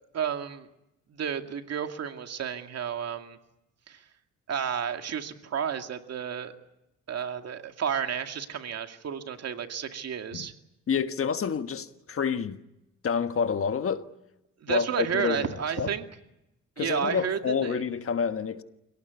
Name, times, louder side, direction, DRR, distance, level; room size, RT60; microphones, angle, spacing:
voice 1, 0.1-0.7 1.1-3.4 3.9-4.0 4.5-6.5 7.1-10.5 14.6-16.1 16.8-17.8, right 8 dB, 55° right, 2.4 m, -31 dB
voice 2, 10.9-12.6 13.0-14.1 14.7-15.9 16.8-18.6, left 6 dB, 45° left, 1.4 m, -28 dB
27.5 x 18.0 x 9.7 m
cardioid pair, 90°, 30 cm